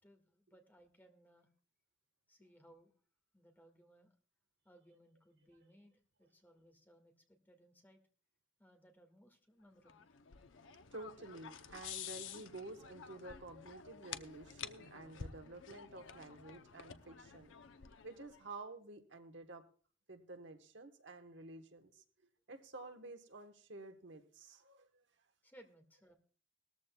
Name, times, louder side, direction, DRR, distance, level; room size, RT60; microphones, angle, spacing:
voice 1, 0.0-1.5 2.3-2.9 3.3-4.1 4.6-8.0 8.6-10.1 10.4-10.5 25.4-26.1, right 1 dB, 10° left, 3 dB, 1.8 m, -64 dB
sound 1, 9.9-18.4, left 7 dB, 75° left, 0.7 m, -51 dB
voice 2, 10.7-17.6 18.0-19.6 20.1-22.0 22.5-25.0, right 2 dB, 65° right, 6 dB, 1.2 m, -51 dB
19.0 x 14.0 x 2.3 m, 0.41 s
head